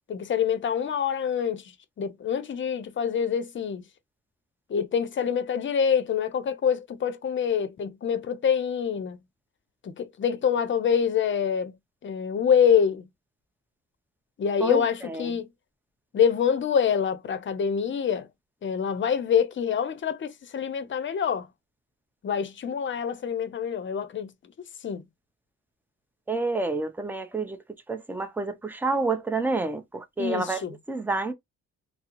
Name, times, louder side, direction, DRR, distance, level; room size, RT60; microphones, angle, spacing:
voice 1, 0.1-3.8 4.7-9.2 9.8-11.7 12.0-13.1 14.4-15.5 16.1-18.3 18.6-21.5 22.2-24.5 24.8-25.1 30.2-30.7, left 7 dB, 40° left, 0.7 m, -26 dB
voice 2, 14.6-15.3 26.3-27.6 27.9-30.6 30.9-31.3, right 3 dB, 5° right, 0.6 m, -29 dB
3.6 x 2.0 x 2.9 m
cardioid pair, 90°, 30 cm